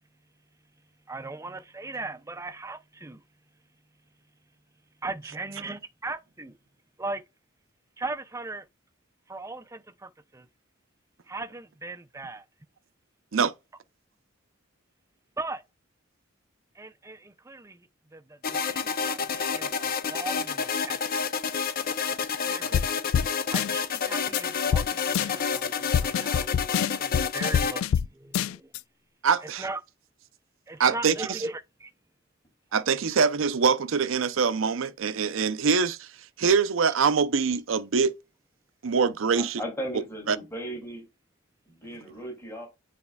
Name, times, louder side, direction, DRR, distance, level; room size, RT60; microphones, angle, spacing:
voice 1, 1.1-3.2 5.0-6.6 7.0-7.2 8.0-8.7 9.3-10.5 11.3-12.5 15.4-15.6 16.7-21.0 22.5-22.8 23.5-26.5 27.0-28.7 29.4-29.8 30.7-31.9, right 2 dB, 15° right, 0.6 m, -38 dB
sound 1, 18.4-27.8, left 6 dB, 45° left, 0.6 m, -29 dB
sound 2, 22.7-22.9 23.1-23.3 23.5-24.0 24.3-24.4 24.7-24.9 25.1-25.6 25.9-28.1 28.3-28.8, left 8 dB, 80° left, 0.3 m, -25 dB
voice 2, 29.2-29.6 30.8-31.4 32.7-36.1 36.4-38.2 38.8-39.6 40.3-40.4, right 5 dB, 70° right, 0.6 m, -24 dB
voice 3, 39.4-41.1 41.7-42.7, right 1 dB, 15° left, 2.8 m, -36 dB
9.5 x 4.2 x 2.3 m
head